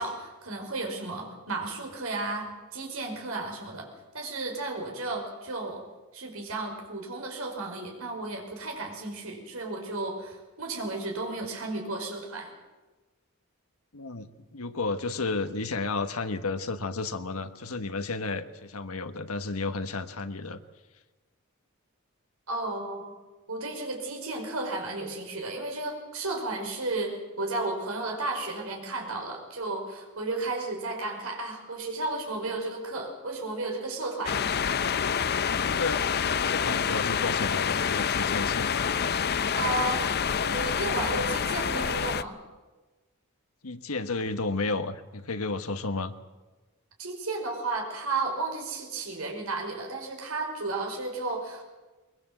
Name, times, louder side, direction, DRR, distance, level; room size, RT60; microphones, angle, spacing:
voice 1, 0.0-3.9 4.1-5.8 6.1-12.5 22.5-23.2 23.5-34.4 39.5-40.0 40.4-42.4 47.0-51.6, right 2 dB, 80° right, 1 dB, 5.3 m, -33 dB
voice 2, 13.9-20.6 35.6-36.0 36.4-38.9 43.6-46.1, left 3 dB, 90° left, 9 dB, 1.4 m, -32 dB
sound 1, 34.3-42.2, left 7 dB, 50° left, 0.6 m, -27 dB
22.0 x 21.0 x 7.7 m, 1.2 s
head